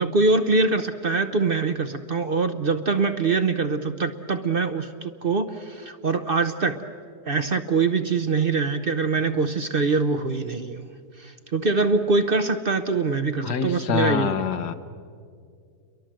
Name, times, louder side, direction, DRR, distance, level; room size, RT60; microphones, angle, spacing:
voice 1, 0.0-6.8 7.3-10.9 11.2-14.4, right 4 dB, 45° right, 9 dB, 0.8 m, -23 dB
voice 2, 13.4-14.7, left 7 dB, 85° left, 9 dB, 1.7 m, -25 dB
29.5 x 23.0 x 7.6 m, 2.2 s
omnidirectional pair, 1.7 m